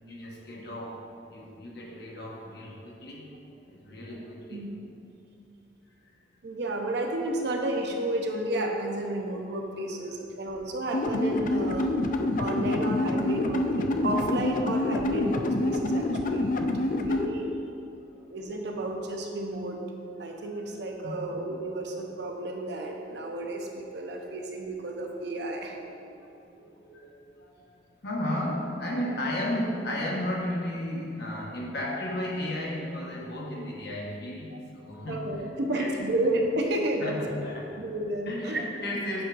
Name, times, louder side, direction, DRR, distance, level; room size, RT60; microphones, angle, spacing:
voice 1, 0.1-3.3 3.7-4.7 6.0-6.1 18.0-18.3 21.0-21.3 25.9-27.6 28.0-35.9 37.0-37.6 38.3-39.2, left 1 dB, 60° left, -2 dB, 1.2 m, -34 dB
voice 2, 6.4-11.9 12.4-16.7 17.0-17.5 18.3-19.8 20.2-25.8 35.1-37.2 37.7-38.7, right 1 dB, 65° right, 2 dB, 0.7 m, -31 dB
sound 1, 10.9-17.3, left 2 dB, 45° left, 0.4 m, -27 dB
8.4 x 3.6 x 4.7 m, 2.7 s
head